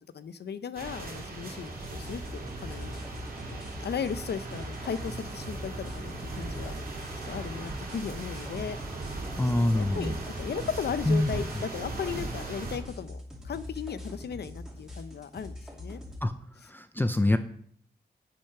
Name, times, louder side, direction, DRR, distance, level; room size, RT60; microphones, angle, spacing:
voice 1, 0.1-2.9 3.5-6.7 7.2-8.8 9.5-16.0, left 7 dB, 75° left, 13 dB, 0.7 m, -36 dB
sound 1, 0.7-12.8, right 3 dB, 60° right, 3.0 m, -38 dB
sound 2, 1.8-16.2, left 1 dB, 5° right, 2.7 m, -43 dB
voice 2, 9.4-10.1 11.1-11.3 16.2-16.3 16.7-17.4, left 1 dB, 10° left, 9 dB, 0.5 m, -25 dB
8.6 x 6.9 x 5.8 m, 0.63 s
wide cardioid pair, 135°, 17 cm